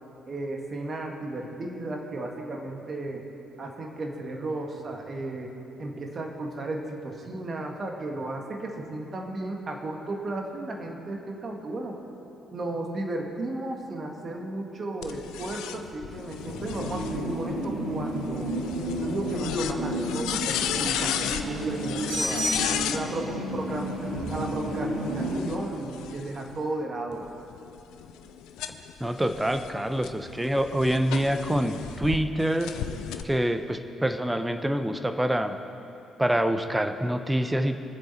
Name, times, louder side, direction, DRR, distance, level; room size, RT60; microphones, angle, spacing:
voice 1, 0.3-3.2 3.6-5.5 5.8-12.0 12.5-18.5 19.0-22.5 22.9-27.3, right 2 dB, 40° right, 2 dB, 1.8 m, -34 dB
sound 1, 15.0-23.0 24.2-26.5 27.1-32.2 32.6-33.2, left 10 dB, 70° left, 0.5 m, -35 dB
sound 2, 16.4-25.4, equal, 80° right, 2.1 m, -31 dB
voice 2, 29.0-32.7 33.2-35.6 36.2-37.8, right 1 dB, 10° right, 8 dB, 0.9 m, -26 dB
23.0 x 7.7 x 4.3 m, 2.8 s
hypercardioid pair, 45°, 0 cm